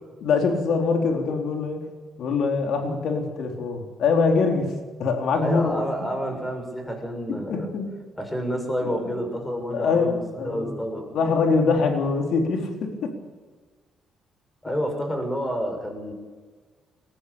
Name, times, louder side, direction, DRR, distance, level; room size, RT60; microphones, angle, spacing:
voice 1, 0.2-1.9 2.2-4.7 5.0-5.8 7.3-7.9 9.7-10.7 11.1-13.1, left 4 dB, 75° left, 3 dB, 4.0 m, -23 dB
voice 2, 5.3-7.7 8.1-11.1 14.6-16.1, equal, 10° left, 4 dB, 6.9 m, -29 dB
20.5 x 14.5 x 8.8 m, 1.4 s
cardioid pair, 90°, 0 cm